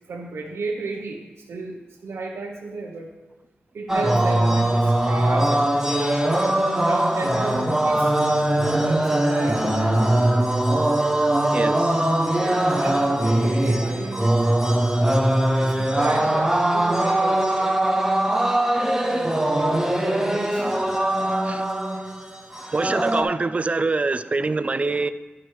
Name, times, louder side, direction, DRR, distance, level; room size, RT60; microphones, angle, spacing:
voice 1, 0.1-3.1 3.7-5.9 6.8-8.1 8.7-10.6 11.1-11.6 12.4-14.9 15.4-17.7 18.9-20.7 21.5-21.6 23.4-23.5, right 3 dB, 90° right, 0.8 m, -34 dB
sound 1, 3.9-23.2, right 1 dB, 10° right, 0.8 m, -21 dB
voice 2, 11.5-12.2 12.9-13.0 21.4-21.7 22.7-25.1, right 3 dB, 30° right, 0.3 m, -25 dB
11.0 x 4.7 x 4.6 m
wide cardioid pair, 105°, 4 cm